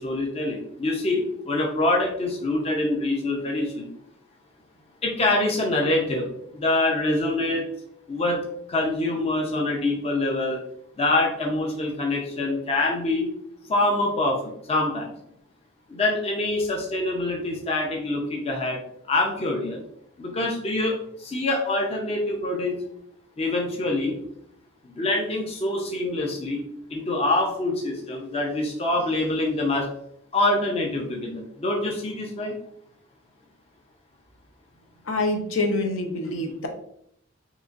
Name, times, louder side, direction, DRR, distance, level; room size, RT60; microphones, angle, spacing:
voice 1, 0.0-3.9 5.0-7.7 8.1-8.4 8.7-10.6 11.0-13.3 13.7-15.1 15.9-18.8 19.1-19.8 20.2-22.8 23.4-24.2 24.8-26.6 26.9-29.9 30.3-32.6, left 2 dB, 30° left, 0 dB, 0.5 m, -25 dB
voice 2, 35.0-36.7, left 2 dB, 70° left, 3 dB, 0.6 m, -26 dB
3.8 x 2.9 x 2.4 m, 0.71 s
head